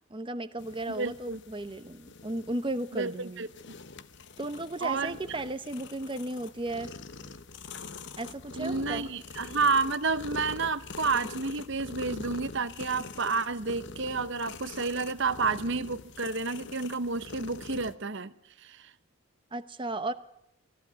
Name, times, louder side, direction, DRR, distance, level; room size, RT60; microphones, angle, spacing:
voice 1, 0.1-3.4 4.4-6.9 8.2-9.1 19.5-20.1, right 2 dB, 20° right, 0.9 m, -35 dB
sound 1, 0.6-17.9, left 4 dB, 55° left, 0.9 m, -44 dB
voice 2, 0.9-1.4 2.9-3.7 4.8-5.2 8.6-18.3 18.6-18.9, right 4 dB, 55° right, 0.9 m, -30 dB
19.5 x 14.5 x 9.3 m
head